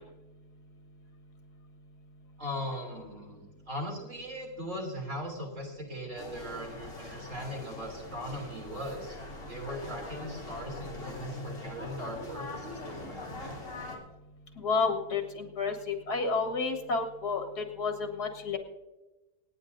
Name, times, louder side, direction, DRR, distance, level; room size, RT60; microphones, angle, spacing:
voice 1, 2.4-9.2 9.5-13.6, equal, 50° right, -1 dB, 3.4 m, -39 dB
sound 1, 6.2-14.0, left 2 dB, 50° left, 2.9 m, -42 dB
voice 2, 14.6-18.6, left 4 dB, 70° left, 4 dB, 2.1 m, -31 dB
26.5 x 9.5 x 2.6 m, 1.1 s
omnidirectional pair, 1.7 m